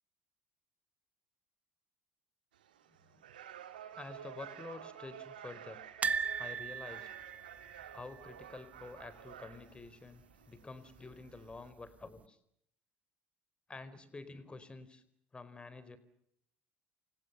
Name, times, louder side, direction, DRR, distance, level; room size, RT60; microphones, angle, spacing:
sound 1, 2.5-11.7, right 10 dB, 80° right, 2.2 m, -52 dB
voice 1, 3.9-5.8 6.4-7.1 7.9-12.4 13.7-15.0 15.3-16.0, left 3 dB, 20° left, 14 dB, 4.4 m, -49 dB
sound 2, 6.0-9.1 9.3-9.5 9.8-9.9 11.1-11.7 12.2-12.3, right 6 dB, 30° right, 1.4 m, -38 dB
29.5 x 24.0 x 6.9 m, 0.72 s
figure-of-eight pair, 55°, 5 cm